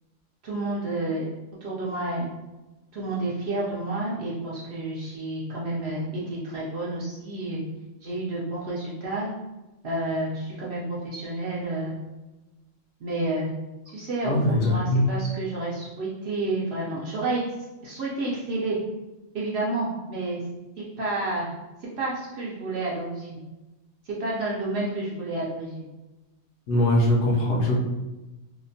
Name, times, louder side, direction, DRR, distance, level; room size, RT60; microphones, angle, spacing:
voice 1, 0.4-1.3 1.6-2.3 2.9-7.6 8.0-9.3 9.8-11.9 13.0-13.5 13.9-17.4 17.8-18.8 19.3-20.4 21.0-21.5 22.0-23.4 24.1-25.8, right 2 dB, 65° right, -6 dB, 0.7 m, -30 dB
voice 2, 14.3-15.1 26.7-27.8, left 1 dB, 65° left, -2 dB, 0.9 m, -21 dB
2.8 x 2.1 x 2.6 m, 1.1 s
omnidirectional pair, 1.4 m